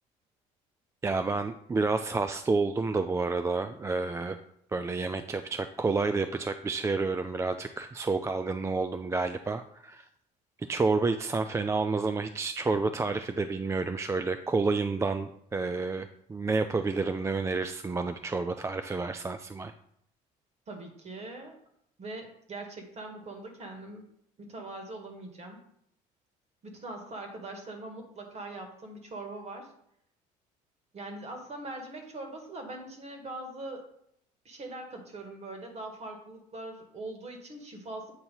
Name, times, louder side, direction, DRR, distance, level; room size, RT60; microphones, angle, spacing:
voice 1, 1.0-4.4 4.7-10.1 10.6-19.7, right 3 dB, 15° right, 8 dB, 0.4 m, -29 dB
voice 2, 20.7-21.6 22.0-24.1 24.4-25.6 26.6-29.7 30.9-33.9 34.5-38.1, right 2 dB, 40° right, 4 dB, 1.8 m, -42 dB
8.1 x 2.8 x 5.5 m, 0.72 s
supercardioid pair, 85°, 16 cm